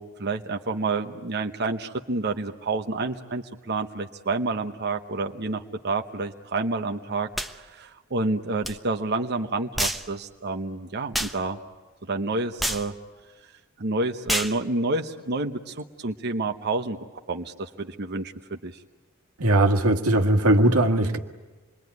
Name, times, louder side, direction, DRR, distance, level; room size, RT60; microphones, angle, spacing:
voice 1, 0.0-11.6 12.0-12.9 13.8-17.0 17.3-18.8, right 3 dB, 50° right, 1.0 m, -29 dB
sound 1, 7.3-7.5 8.6-8.8 9.8-10.1 11.1-11.4 12.6-12.9 14.3-14.6, equal, ahead, 0.9 m, -27 dB
voice 2, 19.4-21.2, right 1 dB, 90° right, 1.8 m, -19 dB
27.5 x 22.5 x 9.5 m
head